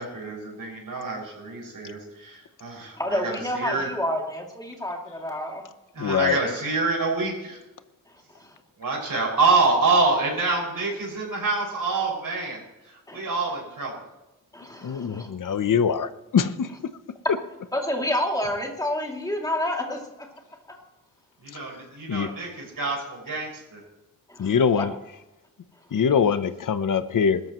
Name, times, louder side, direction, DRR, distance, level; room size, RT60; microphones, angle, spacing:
voice 1, 0.0-3.9 5.9-7.6 8.8-14.0 21.4-23.8, right 3 dB, 90° right, -1 dB, 6.0 m, -26 dB
voice 2, 3.0-5.6 8.4-8.6 13.1-13.2 14.5-15.3 17.7-20.0 24.3-24.5 24.8-24.9, left 1 dB, 10° left, 0 dB, 2.7 m, -29 dB
voice 3, 6.0-6.4 14.8-16.9 17.3-17.4 21.5-21.6 22.1-22.3 24.4-24.9 25.9-27.4, left 6 dB, 70° left, 11 dB, 0.8 m, -23 dB
20.5 x 13.5 x 3.1 m, 0.97 s
wide cardioid pair, 140°, 33 cm